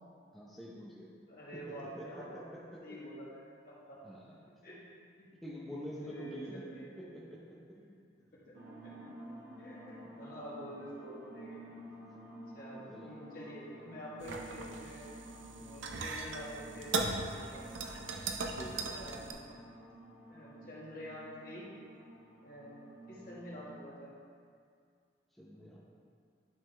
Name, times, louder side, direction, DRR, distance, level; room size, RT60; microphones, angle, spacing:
voice 1, 0.3-1.1 1.5-2.8 4.0-4.4 5.4-7.8 12.9-13.2 14.2-14.4 18.5-19.1 25.4-25.8, equal, ahead, -7 dB, 0.7 m, -47 dB
voice 2, 1.3-2.5 2.8-4.0 4.6-4.8 5.2-5.3 5.7-6.9 7.7-8.0 8.3-8.5 9.6-12.1 12.5-15.1 15.5-16.9 17.3-17.7 18.9-19.4 20.3-21.7 22.4-24.1, equal, 50° left, -7 dB, 1.6 m, -48 dB
sound 1, 8.5-23.9, right 1 dB, 60° right, 0.9 m, -51 dB
sound 2, 14.2-19.3, right 3 dB, 90° right, 0.6 m, -39 dB
10.5 x 4.1 x 3.3 m, 2.2 s
head